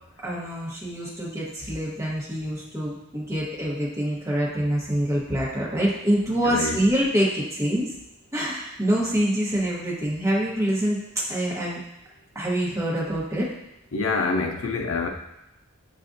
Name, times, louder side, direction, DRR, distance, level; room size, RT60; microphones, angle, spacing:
voice 1, 0.2-7.9 8.3-11.0 11.3-11.8 12.3-13.5, equal, 15° right, -6 dB, 1.0 m, -25 dB
voice 2, 6.4-6.8 13.9-15.1, left 3 dB, 80° left, 3 dB, 0.5 m, -26 dB
6.5 x 2.5 x 2.6 m, 0.88 s
head